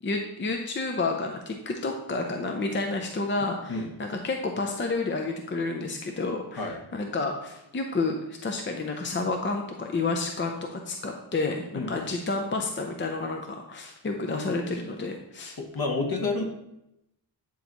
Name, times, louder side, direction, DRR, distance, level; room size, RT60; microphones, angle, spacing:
voice 1, 0.0-15.6, left 3 dB, 25° left, 3 dB, 0.6 m, -30 dB
voice 2, 15.7-16.4, left 3 dB, 45° left, 3 dB, 1.2 m, -28 dB
9.2 x 3.9 x 3.0 m, 0.85 s
cardioid pair, 80°, 47 cm